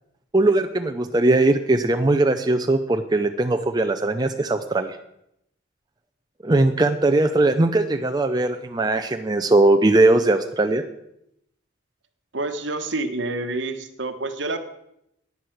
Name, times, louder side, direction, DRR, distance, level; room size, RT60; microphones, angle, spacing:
voice 1, 0.3-5.0 6.4-10.8, right 2 dB, 20° right, 6 dB, 0.5 m, -20 dB
voice 2, 12.3-14.6, right 2 dB, 65° right, 8 dB, 1.1 m, -28 dB
10.5 x 9.5 x 6.4 m, 0.80 s
head